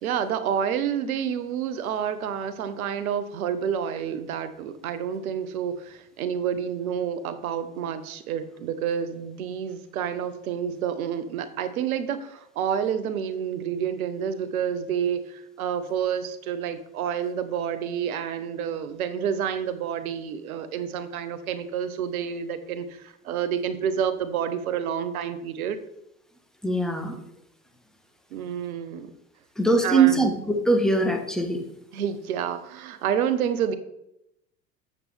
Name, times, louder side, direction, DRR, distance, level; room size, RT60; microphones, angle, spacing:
voice 1, 0.0-25.8 28.3-29.1 29.8-30.3 31.9-33.8, right 8 dB, 75° right, 11 dB, 0.9 m, -29 dB
voice 2, 26.6-27.2 29.6-31.6, right 3 dB, ahead, 4 dB, 1.3 m, -22 dB
7.6 x 7.4 x 3.4 m, 0.82 s
hypercardioid pair, 70°, 43 cm